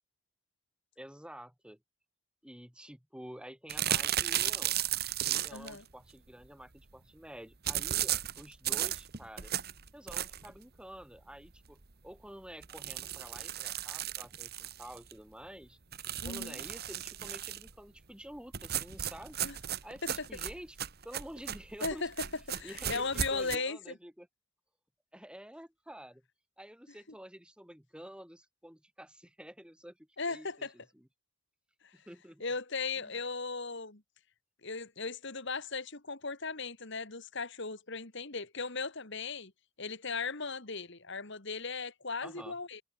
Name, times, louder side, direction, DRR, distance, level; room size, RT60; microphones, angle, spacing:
voice 1, 1.0-1.8 2.4-4.8 5.2-9.5 9.9-15.8 16.2-19.4 19.8-20.8 21.0-22.1 22.6-24.3 25.1-26.2 26.6-31.1 31.9-32.4 33.0-33.1 42.2-42.6, equal, 5° right, 2.3 m, -49 dB
sound 1, 3.7-5.8 7.7-10.6 11.0-11.1 11.5-11.6 11.8-11.9 12.6-15.1 15.9-17.7 18.5-23.6, right 11 dB, 45° right, 1.5 m, -35 dB
voice 2, 5.5-5.8 16.2-16.6 19.4-19.6 20.0-20.3 21.8-22.1 22.5-23.8 30.2-30.7 31.8-32.0 32.4-34.0 34.6-39.5 39.8-42.8, left 4 dB, 55° left, 2.2 m, -37 dB
head